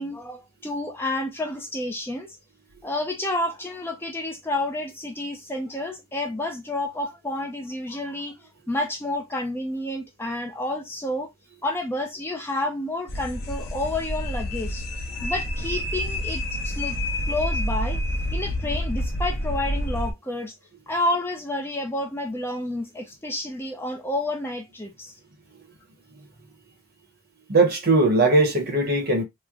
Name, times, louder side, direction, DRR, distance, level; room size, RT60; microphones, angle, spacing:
voice 1, 0.0-2.3 2.8-8.4 8.7-11.3 11.6-14.8 15.2-17.0 17.3-18.0 18.3-20.5 20.9-25.1, left 1 dB, 10° left, 0.5 m, -30 dB
sound 1, 13.1-20.1, equal, 50° left, 0.9 m, -28 dB
voice 2, 27.5-29.2, right 2 dB, 45° right, 0.9 m, -19 dB
3.1 x 2.1 x 3.6 m
head